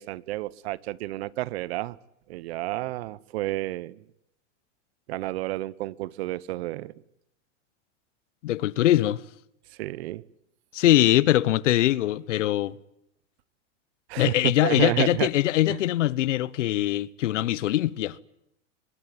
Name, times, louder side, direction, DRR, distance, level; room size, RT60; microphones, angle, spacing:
voice 1, 0.0-2.0 2.3-4.0 5.1-6.9 9.8-10.2 14.1-15.3, right 17 dB, 60° right, 1.0 m, -30 dB
voice 2, 8.4-9.2 10.7-12.8 14.2-18.2, left 14 dB, 80° left, 1.1 m, -22 dB
23.0 x 21.5 x 9.7 m
supercardioid pair, 150°, 36 cm